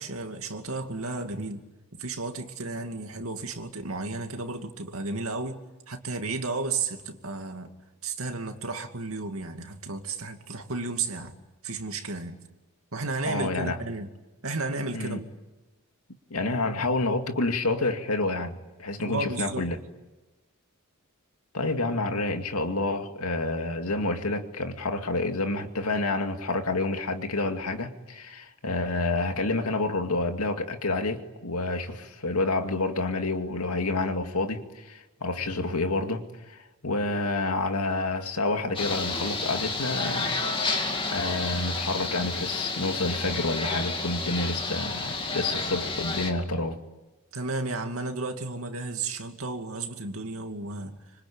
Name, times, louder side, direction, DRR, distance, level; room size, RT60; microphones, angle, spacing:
voice 1, 0.0-1.6 1.9-7.7 8.0-11.4 11.6-12.4 12.9-14.1 14.4-15.3 19.0-19.7 47.3-50.9, right 3 dB, 70° right, 2.5 m, -33 dB
voice 2, 13.3-13.8 14.9-15.2 16.3-19.8 21.5-46.8, left 2 dB, 85° left, 2.3 m, -29 dB
sound 1, 38.7-46.3, left 3 dB, 25° left, 2.4 m, -31 dB
25.5 x 25.5 x 8.9 m
head